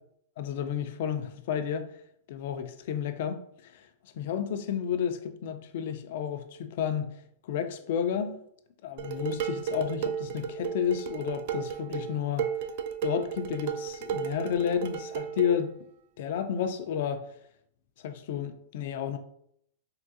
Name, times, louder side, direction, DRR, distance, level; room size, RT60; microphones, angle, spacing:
voice 1, 0.4-1.9 2.3-7.1 7.4-8.4 8.8-12.5 13.0-15.7 16.2-17.2 18.0-19.2, left 8 dB, 65° left, 0.4 m, -31 dB
Dishes pots and pans, 9.0-15.6, right 8 dB, 60° right, 0.3 m, -34 dB
3.6 x 2.3 x 2.5 m
hypercardioid pair, 130°, 0 cm